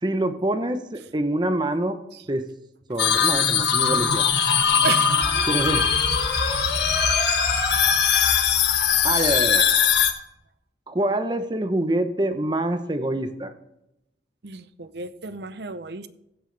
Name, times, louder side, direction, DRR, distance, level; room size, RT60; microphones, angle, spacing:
voice 1, 0.0-2.0 2.3-2.4 2.9-4.3 5.5-5.9 9.0-9.6 10.9-13.5, right 1 dB, 25° right, 9 dB, 0.8 m, -25 dB
sound 1, 3.0-10.1, left 7 dB, 80° left, 1.3 m, -21 dB
sound 2, 4.1-9.1, left 1 dB, 20° left, 4.9 m, -35 dB
voice 2, 14.4-16.1, right 5 dB, 70° right, 13 dB, 0.7 m, -32 dB
16.0 x 9.0 x 3.4 m, 0.86 s
head